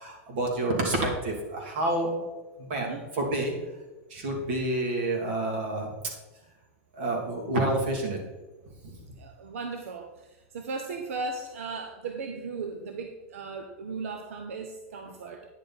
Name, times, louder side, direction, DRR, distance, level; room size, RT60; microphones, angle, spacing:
voice 1, 0.0-2.1 2.6-3.5 4.1-5.9 7.0-8.2, right 2 dB, 55° right, 0 dB, 2.7 m, -28 dB
voice 2, 9.2-10.1 10.5-15.5, right 4 dB, 85° right, 5 dB, 0.9 m, -36 dB
9.9 x 6.9 x 4.1 m, 1.2 s
supercardioid pair, 170°, 7 cm